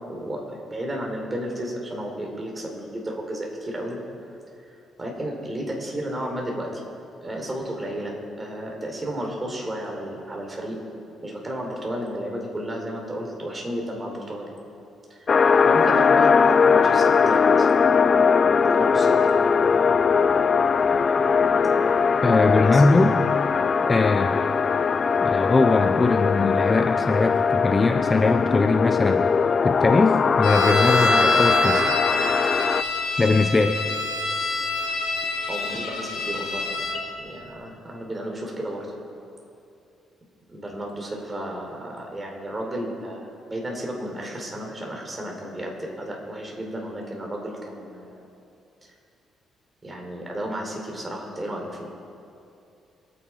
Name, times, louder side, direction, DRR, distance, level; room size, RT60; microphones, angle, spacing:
voice 1, 0.1-4.0 4.6-6.8 7.2-10.7 11.2-14.5 15.1-17.7 18.0-19.2 21.6-22.1 22.6-22.8 35.5-36.8 37.2-38.9 40.5-48.2 49.8-51.9, right 1 dB, 20° right, 0 dB, 4.1 m, -33 dB
sound 1, 15.3-32.8, left 5 dB, 40° left, 0.4 m, -20 dB
voice 2, 22.2-23.1 23.9-24.4 25.2-29.2 29.6-31.9 33.2-33.8, left 3 dB, 25° left, 6 dB, 0.8 m, -21 dB
sound 2, 30.4-37.0, left 2 dB, 85° left, 1.9 m, -25 dB
26.0 x 9.7 x 4.8 m, 2.7 s
cardioid pair, 90°, 0 cm